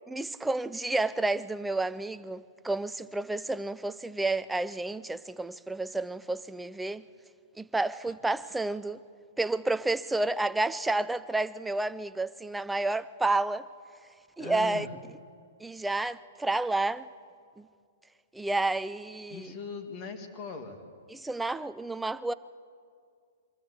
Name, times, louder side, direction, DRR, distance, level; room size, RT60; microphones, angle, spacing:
voice 1, 0.1-7.0 7.6-9.0 9.4-13.7 14.4-14.9 15.6-17.1 17.6-17.7 18.3-19.5 21.1-22.3, right 2 dB, 5° right, 0.4 m, -30 dB
voice 2, 14.4-14.9 19.3-20.8, left 5 dB, 30° left, 2.2 m, -40 dB
24.0 x 14.0 x 8.1 m
hypercardioid pair, 155°, 0 cm